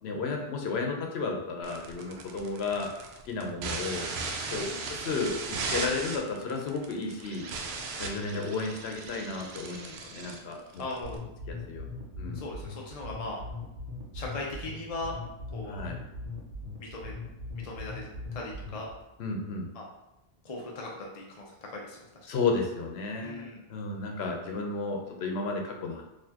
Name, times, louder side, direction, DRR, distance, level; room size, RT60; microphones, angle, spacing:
voice 1, 0.0-2.9 3.3-4.1 4.5-7.5 8.0-9.8 10.1-10.6 11.5-11.9 12.2-12.4 15.7-16.0 19.2-19.7 22.3-26.0, left 4 dB, 85° left, 2 dB, 0.9 m, -33 dB
sound 1, 1.6-11.2, right 4 dB, 85° right, 0.8 m, -37 dB
voice 2, 4.5-4.8 9.6-10.0 10.8-11.2 12.3-13.4 14.1-15.1 15.5-15.8 16.8-17.1 17.6-18.9 19.7-19.9 20.4-22.1 23.2-23.6, left 2 dB, 45° left, -2 dB, 0.5 m, -39 dB
sound 2, 11.0-19.0, left 2 dB, 55° right, 0.9 m, -40 dB
4.1 x 2.7 x 2.8 m, 0.93 s
omnidirectional pair, 1.0 m